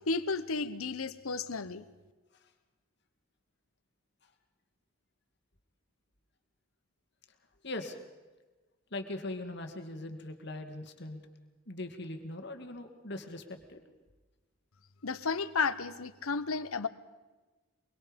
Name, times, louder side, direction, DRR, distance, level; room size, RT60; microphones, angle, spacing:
voice 1, 0.1-1.8 15.0-16.9, left 4 dB, 85° left, 14 dB, 1.0 m, -33 dB
voice 2, 7.6-8.0 8.9-11.2 11.7-13.8, left 2 dB, 50° left, 6 dB, 2.2 m, -40 dB
23.5 x 23.5 x 5.3 m, 1.2 s
head